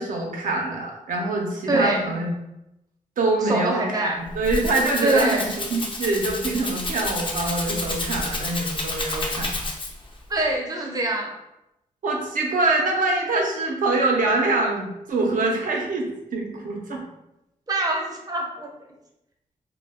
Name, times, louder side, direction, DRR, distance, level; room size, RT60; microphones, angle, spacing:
voice 1, 0.0-2.3 3.2-9.6 12.0-17.0, right 2 dB, 80° right, 0 dB, 0.5 m, -24 dB
voice 2, 1.7-2.0 3.4-4.2 5.0-5.5 10.3-11.3 17.7-18.7, right 2 dB, 30° right, 0 dB, 0.5 m, -24 dB
Rattle (instrument), 4.2-10.1, left 2 dB, 35° left, 0.5 m, -30 dB
2.2 x 2.1 x 3.3 m, 0.89 s
wide cardioid pair, 90°, 14 cm